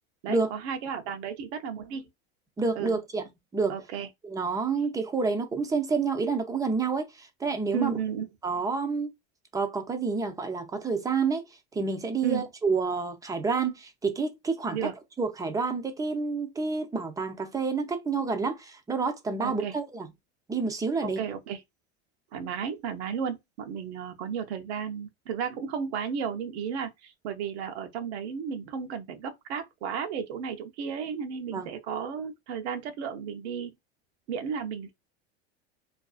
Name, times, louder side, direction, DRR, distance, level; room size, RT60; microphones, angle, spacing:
voice 1, 0.2-2.1 2.8-3.0 3.7-4.1 7.7-8.3 12.2-12.4 14.7-14.9 19.4-19.7 21.0-21.6 22.3-33.7 34.3-34.9, right 7 dB, 75° right, 0.7 m, -33 dB
voice 2, 2.6-3.2 3.5-3.8 4.2-7.9 8.4-9.1 9.5-11.5 11.7-14.9 15.2-20.1 20.5-21.2 31.5-31.7, right 4 dB, 10° right, 0.4 m, -28 dB
2.5 x 2.3 x 2.3 m
supercardioid pair, 115°, 33 cm